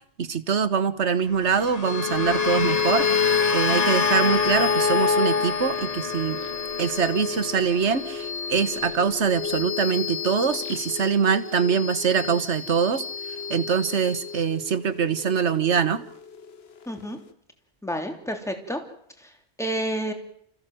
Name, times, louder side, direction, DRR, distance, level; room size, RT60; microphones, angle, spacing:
voice 1, 0.0-3.3 3.5-6.4 6.8-16.0, right 6 dB, 75° right, 13 dB, 1.6 m, -24 dB
sound 1, 1.3-9.7, left 4 dB, 35° left, 1.1 m, -30 dB
sound 2, 1.8-16.6, left 6 dB, 60° left, 1.4 m, -28 dB
voice 2, 16.9-17.2 17.8-18.8 19.2-20.1, equal, ahead, 4 dB, 3.1 m, -30 dB
28.5 x 15.5 x 7.7 m, 0.70 s
omnidirectional pair, 1.2 m